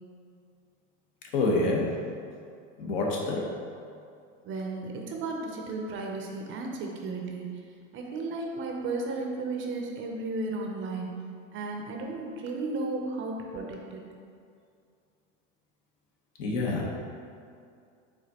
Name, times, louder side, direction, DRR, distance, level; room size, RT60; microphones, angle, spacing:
voice 1, 1.3-2.0 2.8-3.5 16.4-16.9, left 2 dB, 70° left, -1 dB, 1.0 m, -27 dB
voice 2, 4.4-7.5 7.9-11.1 11.5-14.0, right 3 dB, 30° right, 1 dB, 0.5 m, -34 dB
5.0 x 3.8 x 2.8 m, 2.4 s
supercardioid pair, 120°, 39 cm